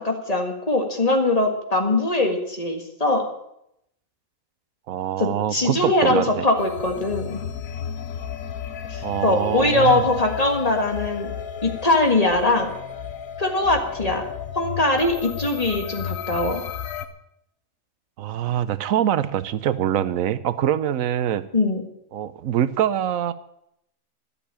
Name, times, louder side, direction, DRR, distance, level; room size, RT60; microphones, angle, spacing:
voice 1, 0.0-3.2 5.2-7.4 8.9-11.3 11.6-12.7 13.4-14.2 14.6-16.6 21.5-21.8, left 2 dB, 30° left, 3 dB, 1.9 m, -21 dB
voice 2, 4.9-6.4 9.0-10.1 18.2-21.4 22.1-23.3, right 10 dB, 90° right, 14 dB, 1.1 m, -24 dB
sound 1, 6.6-17.1, left 8 dB, 80° left, 1.3 m, -33 dB
12.0 x 7.0 x 10.0 m, 0.78 s
omnidirectional pair, 1.4 m